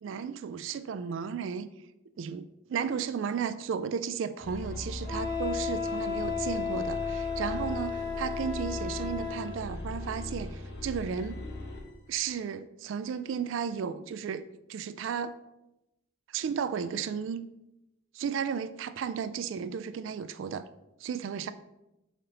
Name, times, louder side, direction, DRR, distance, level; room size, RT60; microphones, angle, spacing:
voice 1, 0.0-1.7 2.2-11.4 12.1-14.4 14.7-15.3 16.3-17.5 18.1-20.6 21.0-21.5, right 7 dB, 75° right, 0.3 m, -34 dB
sound 1, 4.4-11.9, left 1 dB, 55° left, 1.2 m, -39 dB
Wind instrument woodwind instrument, 5.0-9.5, left 6 dB, 15° left, 2.2 m, -33 dB
5.7 x 4.1 x 5.3 m
head